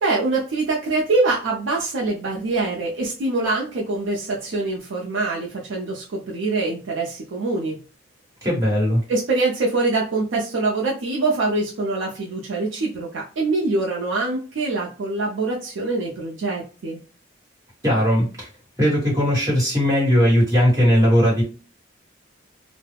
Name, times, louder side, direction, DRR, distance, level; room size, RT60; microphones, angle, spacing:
voice 1, 0.0-7.8 9.1-17.0, right 3 dB, 85° right, -2 dB, 0.5 m, -24 dB
voice 2, 8.4-9.0 17.8-18.5 18.8-21.4, equal, 15° right, -5 dB, 1.3 m, -18 dB
2.2 x 2.0 x 3.3 m, 0.35 s
head